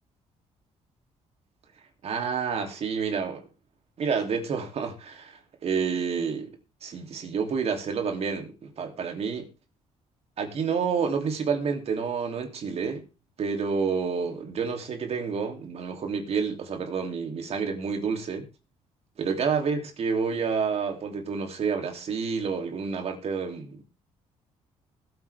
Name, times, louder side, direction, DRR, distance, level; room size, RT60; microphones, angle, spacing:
voice 1, 2.0-3.4 4.0-6.5 6.8-9.5 10.4-13.0 13.4-18.5 19.2-23.8, right 5 dB, 55° right, 3.0 m, -29 dB
20.0 x 8.7 x 3.5 m
cardioid pair, 110°, 13 cm